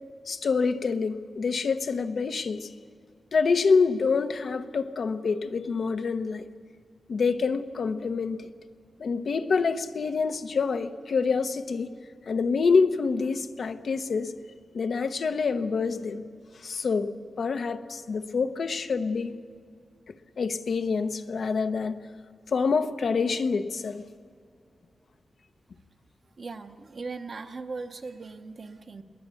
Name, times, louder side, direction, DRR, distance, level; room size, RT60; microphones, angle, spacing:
voice 1, 0.3-2.7 3.3-6.4 7.1-8.5 9.0-11.9 12.3-14.3 14.7-16.2 16.6-17.1 17.4-19.4 20.4-22.0 22.5-24.0, left 5 dB, 65° left, 0.9 m, -26 dB
voice 2, 26.4-29.0, right 4 dB, 50° right, 0.9 m, -39 dB
21.5 x 19.0 x 8.4 m
wide cardioid pair, 135°, 0 cm